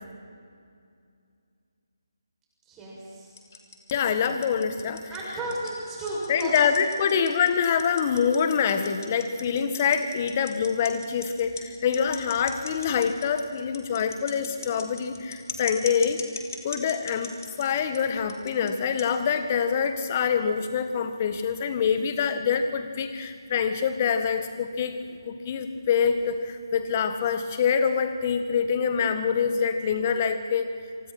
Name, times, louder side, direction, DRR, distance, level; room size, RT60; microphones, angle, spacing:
voice 1, 2.6-3.3 5.1-6.6 7.0-7.2, right 1 dB, 10° right, -5 dB, 6.6 m, -34 dB
sound 1, 3.4-18.0 18.3-18.7 19.0-19.1 19.8-19.9, left 5 dB, 45° left, 3.4 m, -39 dB
voice 2, 3.9-5.0 6.3-16.2 16.6-17.3 17.6-25.0 25.2-30.7, left 7 dB, 30° left, 8 dB, 1.6 m, -25 dB
29.5 x 26.0 x 4.4 m, 2.3 s
figure-of-eight pair, 155°, 2 cm